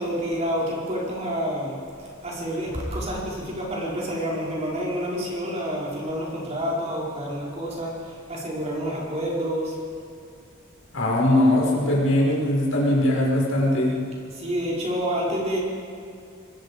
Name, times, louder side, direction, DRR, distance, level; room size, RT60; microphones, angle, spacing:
voice 1, 0.0-9.8 14.3-15.6, equal, 30° right, -4 dB, 4.9 m, -28 dB
voice 2, 10.9-13.9, left 1 dB, 70° left, -3 dB, 5.8 m, -20 dB
25.5 x 20.0 x 5.3 m, 2.4 s
head